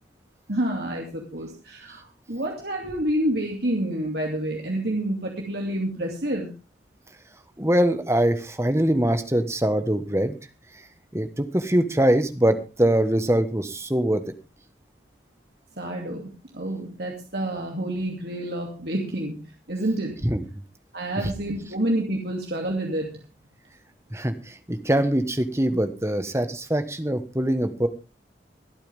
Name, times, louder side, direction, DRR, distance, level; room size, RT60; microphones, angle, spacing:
voice 1, 0.5-6.5 15.8-20.1 20.9-23.2, right 1 dB, 60° right, 1 dB, 2.7 m, -28 dB
voice 2, 7.6-10.4 11.1-14.2 20.2-20.4 24.1-27.9, right 1 dB, 15° right, 9 dB, 1.3 m, -23 dB
25.0 x 8.8 x 3.6 m, 0.30 s
head